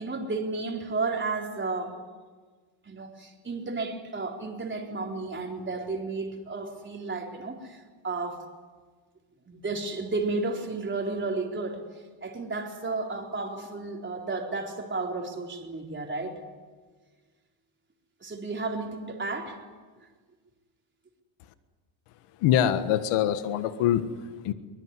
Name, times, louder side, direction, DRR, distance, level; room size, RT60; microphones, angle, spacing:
voice 1, 0.0-2.0 2.8-8.5 9.5-11.8 12.2-16.4 18.2-19.6, right 3 dB, 20° right, 1 dB, 4.3 m, -32 dB
voice 2, 22.4-24.5, left 10 dB, 85° left, 10 dB, 1.6 m, -24 dB
24.0 x 21.5 x 9.9 m, 1.5 s
cardioid pair, 130°, 50 cm